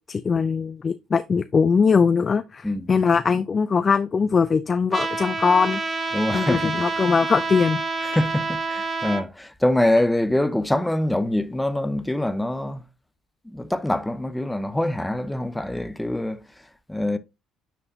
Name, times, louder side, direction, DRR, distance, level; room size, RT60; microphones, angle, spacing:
voice 1, 0.1-5.8 6.3-7.8, left 5 dB, 40° left, 0.4 m, -21 dB
voice 2, 2.6-3.0 6.1-6.8 8.0-12.8 13.4-17.2, left 1 dB, 10° left, 0.8 m, -24 dB
Trumpet, 4.9-9.2, right 3 dB, 30° right, 1.0 m, -28 dB
sound 1, 5.7-5.8 6.9-7.1 8.1-8.4 10.0-10.1 10.4-10.5, left 9 dB, 90° left, 0.8 m, -43 dB
9.6 x 4.2 x 2.7 m
hypercardioid pair, 60°, 0 cm